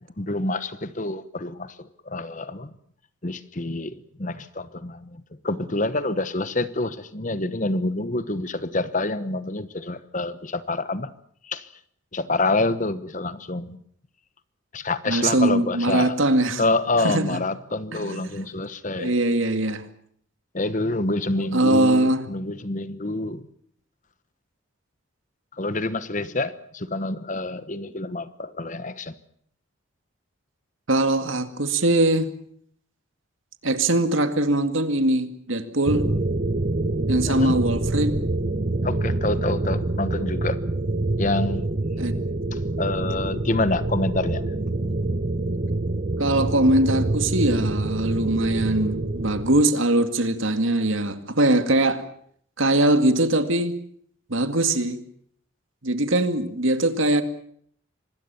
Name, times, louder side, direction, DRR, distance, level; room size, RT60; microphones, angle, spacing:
voice 1, 0.2-2.7 3.2-11.1 11.4-11.7 12.1-13.8 14.7-16.1 16.6-19.2 20.5-23.4 25.6-29.1 37.3-37.6 38.8-40.6 41.2-41.8 42.5-44.4, left 2 dB, 40° left, 1.1 m, -27 dB
voice 2, 15.1-16.6 17.0-17.4 17.9-18.2 19.0-19.9 21.5-22.2 30.9-32.3 33.6-36.1 37.1-38.2 42.0-42.2 46.2-52.0 52.6-53.8 54.3-55.0 55.8-57.2, right 1 dB, 75° right, 2.2 m, -21 dB
sound 1, 35.9-49.6, right 2 dB, 40° right, 0.9 m, -26 dB
25.5 x 20.5 x 7.0 m
head